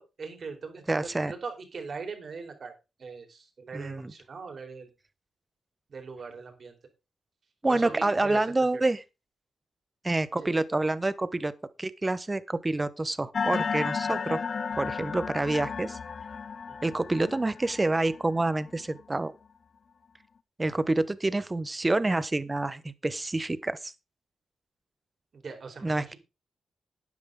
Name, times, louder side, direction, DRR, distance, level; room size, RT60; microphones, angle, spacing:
voice 1, 0.0-2.7 3.0-4.9 5.9-6.7 7.7-8.5 10.4-10.5 16.7-16.8 25.3-26.2, right 4 dB, 50° right, 4.4 m, -40 dB
voice 2, 0.9-1.3 3.7-4.1 7.6-9.0 10.0-11.5 11.8-14.4 14.8-16.0 16.8-19.3 20.6-23.9 25.8-26.1, right 2 dB, 20° right, 1.1 m, -27 dB
sound 1, 13.3-19.0, left 5 dB, 50° left, 0.7 m, -33 dB
12.5 x 9.6 x 3.8 m
cardioid pair, 95°, 0 cm